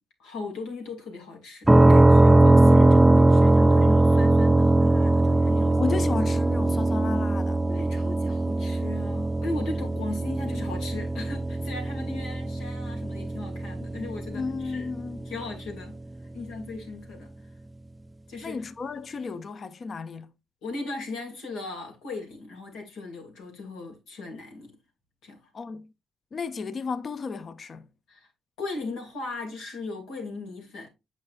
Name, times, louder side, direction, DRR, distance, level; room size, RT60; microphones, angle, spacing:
voice 1, 0.2-5.8 7.7-14.9 15.3-16.0 16.3-17.3 18.3-18.6 20.6-24.8 25.2-25.4 28.1-28.3 28.6-30.9, left 3 dB, 90° left, 2.5 m, -37 dB
sound 1, 1.7-15.4, right 2 dB, 10° right, 0.3 m, -20 dB
voice 2, 5.7-7.6 14.3-15.3 18.4-20.3 25.5-25.9 26.3-27.9, left 4 dB, 45° left, 0.6 m, -33 dB
8.4 x 5.3 x 2.5 m
cardioid pair, 90°, 0 cm